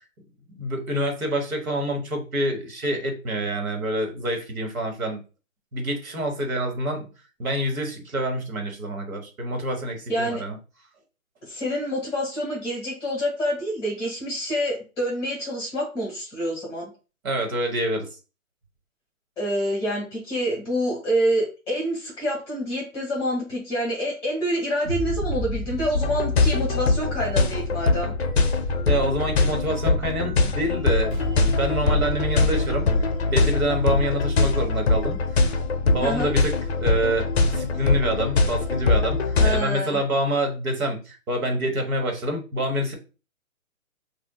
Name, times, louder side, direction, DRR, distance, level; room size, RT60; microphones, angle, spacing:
voice 1, 0.5-5.2 5.7-7.1 7.4-10.6 17.2-18.1 28.9-32.9 33.3-35.2 35.8-42.9, right 1 dB, 85° right, 3 dB, 1.3 m, -27 dB
voice 2, 10.1-10.4 11.5-16.9 19.4-28.1 36.0-36.3 39.4-40.0, equal, 5° left, -3 dB, 1.1 m, -27 dB
sound 1, 24.8-33.4, right 1 dB, 40° right, 0.5 m, -34 dB
electronic pop-synth pop, 25.9-39.6, left 3 dB, 50° left, 0.5 m, -22 dB
3.7 x 2.4 x 2.3 m, 0.32 s
hypercardioid pair, 165°, 41 cm